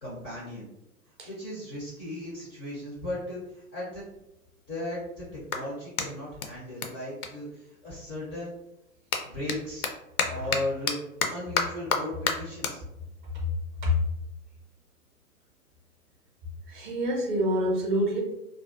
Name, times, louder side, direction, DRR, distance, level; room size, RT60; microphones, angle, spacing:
voice 1, 0.0-0.7 1.2-4.0 4.7-8.5 9.2-9.9 10.3-11.0 11.3-12.8, left 1 dB, 20° left, -6 dB, 0.4 m, -36 dB
Clapping, 4.1-8.2 8.5-15.1, left 5 dB, 75° left, 0.5 m, -33 dB
voice 2, 16.7-18.2, left 1 dB, 35° right, -2 dB, 0.6 m, -26 dB
2.5 x 2.2 x 2.3 m, 0.88 s
figure-of-eight pair, 110°, 44 cm